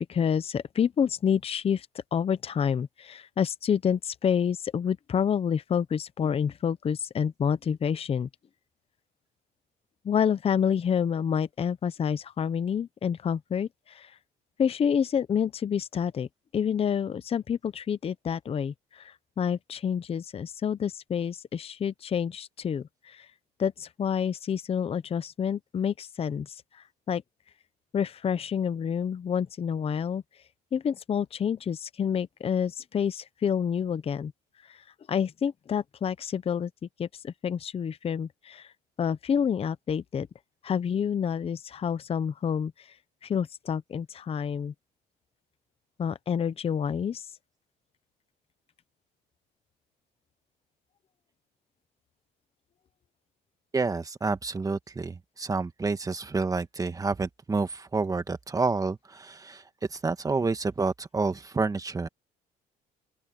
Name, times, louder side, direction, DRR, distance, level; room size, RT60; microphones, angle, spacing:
voice 1, 0.0-8.3 10.0-14.2 14.6-16.3 16.5-23.3 23.6-27.2 27.9-30.2 30.7-34.3 34.7-36.7 37.0-38.7 39.0-40.3 40.6-42.9 43.2-44.7 46.0-47.3, left 7 dB, 35° left, 0.8 m, -28 dB
voice 2, 53.7-62.1, right 4 dB, 20° right, 1.7 m, -29 dB
open air
cardioid pair, 110°, 17 cm